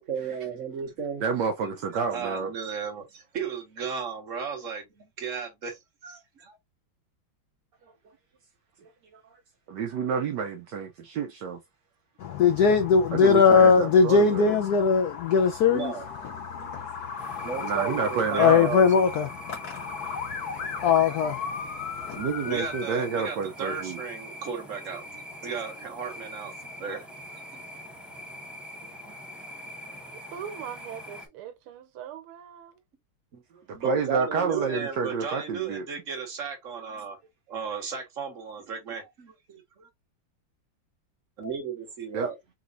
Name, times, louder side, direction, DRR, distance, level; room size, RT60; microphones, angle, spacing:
voice 1, 0.0-1.2 2.1-6.6 15.7-16.0 17.4-18.8 22.4-26.5 26.8-27.1 27.5-27.6 33.3-33.4 33.7-37.2 37.5-39.9 41.4-42.3, right 6 dB, 45° right, 1.4 m, -35 dB
voice 2, 1.2-2.5 9.7-11.6 13.1-14.6 16.6-16.7 17.6-18.7 22.1-24.0 33.7-35.9 42.1-42.3, right 5 dB, 70° right, 1.1 m, -29 dB
voice 3, 12.2-18.1 18.4-22.8, left 5 dB, 80° left, 0.8 m, -22 dB
sound 1, 17.2-31.3, equal, ahead, 0.3 m, -43 dB
voice 4, 30.3-32.7, right 9 dB, 85° right, 1.7 m, -41 dB
4.1 x 3.9 x 2.4 m
omnidirectional pair, 2.3 m